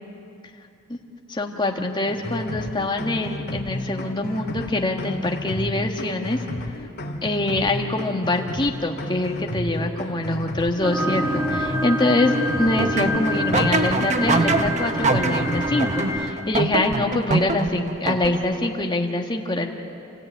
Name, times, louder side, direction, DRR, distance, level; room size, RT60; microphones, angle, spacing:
voice 1, 1.3-6.4 7.2-19.7, left 2 dB, 20° left, 2 dB, 1.7 m, -24 dB
sound 1, 2.0-16.2, left 1 dB, 50° left, 2.0 m, -32 dB
sound 2, 10.8-16.3, equal, 15° right, 1.8 m, -26 dB
sound 3, 12.8-18.7, right 3 dB, 30° right, 0.8 m, -25 dB
28.5 x 15.0 x 9.2 m, 2.7 s
head